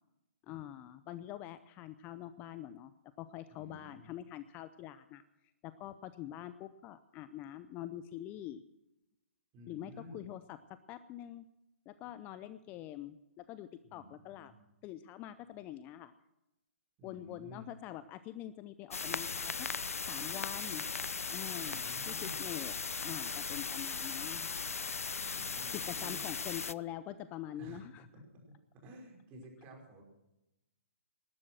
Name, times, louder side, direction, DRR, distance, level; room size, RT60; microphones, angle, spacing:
voice 1, 0.5-5.2 5.6-8.6 9.7-11.4 11.9-14.5 14.8-16.1 17.0-19.7 20.0-20.8 21.3-22.7 23.0-24.6 25.7-28.0, left 12 dB, 20° left, 13 dB, 0.6 m, -45 dB
voice 2, 3.5-4.1 9.5-10.3 13.8-14.6 17.0-17.7 21.6-22.5 25.2-26.3 27.6-27.9 28.1-30.0, equal, 25° right, 0 dB, 5.2 m, -52 dB
sound 1, 18.9-26.7, left 5 dB, 80° left, 0.5 m, -38 dB
19.0 x 12.0 x 6.1 m, 0.93 s
figure-of-eight pair, 135°, 8 cm